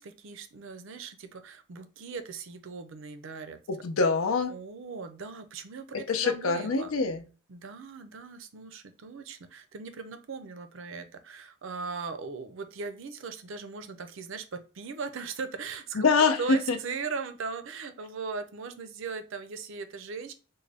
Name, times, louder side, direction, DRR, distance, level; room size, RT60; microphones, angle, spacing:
voice 1, 0.0-3.6 4.5-6.9 7.5-16.1 16.4-20.3, right 4 dB, 60° right, 8 dB, 0.5 m, -39 dB
voice 2, 3.7-4.5 5.9-7.2 15.9-16.8, left 4 dB, 75° left, 8 dB, 0.5 m, -25 dB
3.8 x 2.2 x 3.3 m, 0.35 s
head